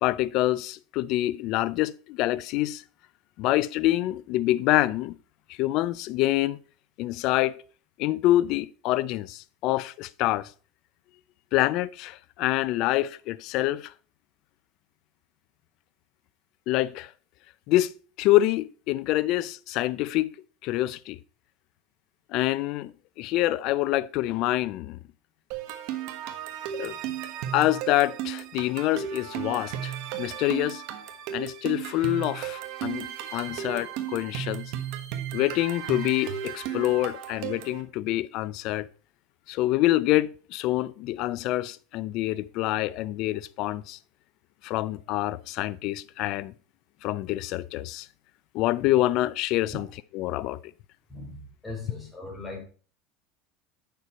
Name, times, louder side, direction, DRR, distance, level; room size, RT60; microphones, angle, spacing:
voice 1, 0.0-2.8 3.4-5.2 5.6-6.6 7.0-7.6 8.0-10.5 11.5-13.9 16.7-17.1 17.7-17.9 18.2-20.3 20.6-21.2 22.3-22.9 23.2-25.0 26.7-27.0 27.5-30.8 31.3-34.7 35.3-38.9 39.5-44.0 44.6-46.5 47.0-48.1 48.5-49.8 50.2-50.6, left 16 dB, 60° left, 0.5 m, -26 dB
sound 1, 25.5-37.8, right 10 dB, 65° right, 1.4 m, -35 dB
voice 2, 51.1-52.6, left 3 dB, 10° left, 4.2 m, -39 dB
9.1 x 6.9 x 4.3 m
supercardioid pair, 125°, 0 cm